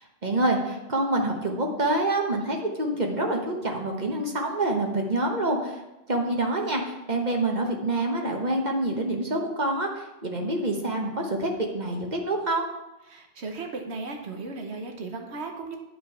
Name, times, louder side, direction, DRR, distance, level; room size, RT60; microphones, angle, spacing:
voice 1, 0.2-5.8 6.1-12.7, right 2 dB, 45° right, 1 dB, 1.2 m, -26 dB
voice 2, 13.1-15.8, right 3 dB, 80° right, 3 dB, 1.4 m, -36 dB
8.9 x 5.2 x 5.8 m, 0.97 s
omnidirectional pair, 1.1 m